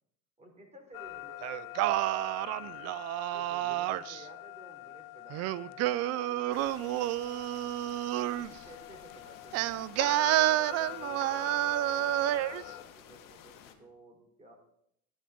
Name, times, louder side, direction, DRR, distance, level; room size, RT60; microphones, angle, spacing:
voice 1, 0.4-2.1 3.3-7.2 8.3-14.5, right 1 dB, 15° right, 1 dB, 3.5 m, -55 dB
sound 1, 0.9-12.8, left 17 dB, 80° left, 0.6 m, -45 dB
Singing, 1.4-4.2 5.3-8.5 9.5-12.6, right 15 dB, 40° right, 0.4 m, -30 dB
sound 2, 6.5-13.7, left 9 dB, 50° left, 1.5 m, -53 dB
11.0 x 10.0 x 3.8 m, 0.75 s
hypercardioid pair, 85°, 41 cm